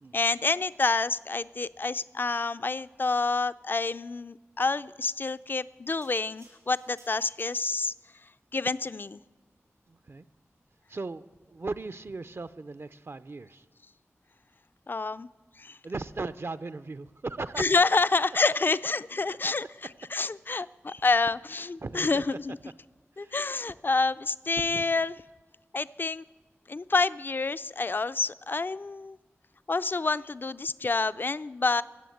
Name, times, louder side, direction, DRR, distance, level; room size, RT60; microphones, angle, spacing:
voice 1, 0.1-7.9 8.5-9.2 14.9-15.3 15.6-15.8 17.6-19.7 20.1-22.6 23.2-25.2 25.7-26.2 26.7-29.2 29.7-31.8, left 3 dB, 45° left, 15 dB, 0.3 m, -28 dB
sound 1, 6.0-8.0 8.6-8.8, right 2 dB, 80° right, 5.6 m, -59 dB
voice 2, 9.9-10.3 10.9-11.2 11.5-13.6 15.8-17.7 19.2-19.4 20.5-20.7 21.8-22.3 23.2-23.3 24.6-24.8, right 3 dB, 55° right, 12 dB, 0.5 m, -37 dB
16.5 x 7.0 x 7.8 m, 1.3 s
wide cardioid pair, 50°, 5 cm